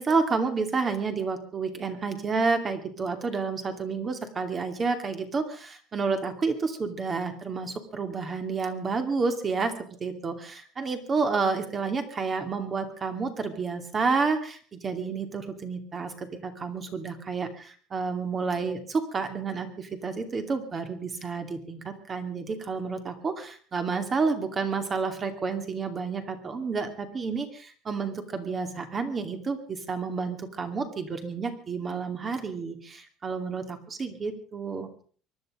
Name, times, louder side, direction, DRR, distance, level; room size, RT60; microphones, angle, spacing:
voice 1, 0.0-9.7 10.0-34.9, right 4 dB, 25° right, 7 dB, 2.6 m, -30 dB
24.0 x 11.0 x 5.0 m, 0.43 s
cardioid pair, 145°, 0 cm